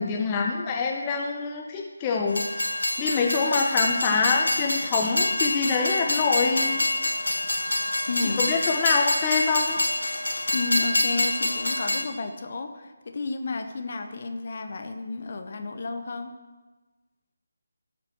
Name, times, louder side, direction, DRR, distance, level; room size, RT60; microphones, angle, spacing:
voice 1, 0.0-2.7 3.0-6.9 8.4-9.8, left 4 dB, 20° left, 1 dB, 0.9 m, -25 dB
Train, 2.3-12.0, left 1 dB, 80° left, 1.2 m, -26 dB
voice 2, 8.1-8.4 10.5-16.3, left 3 dB, 45° left, 6 dB, 1.1 m, -32 dB
14.5 x 5.8 x 6.6 m, 1.2 s
figure-of-eight pair, 155°, 0 cm